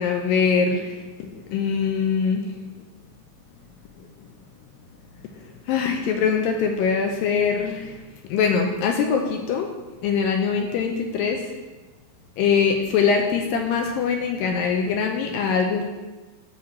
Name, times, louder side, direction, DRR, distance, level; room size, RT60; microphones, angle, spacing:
voice 1, 0.0-2.5 4.0-4.1 5.4-9.7 10.0-11.5 12.4-15.9, left 6 dB, 80° left, 3 dB, 2.1 m, -23 dB
7.4 x 7.3 x 4.2 m, 1.2 s
omnidirectional pair, 4.5 m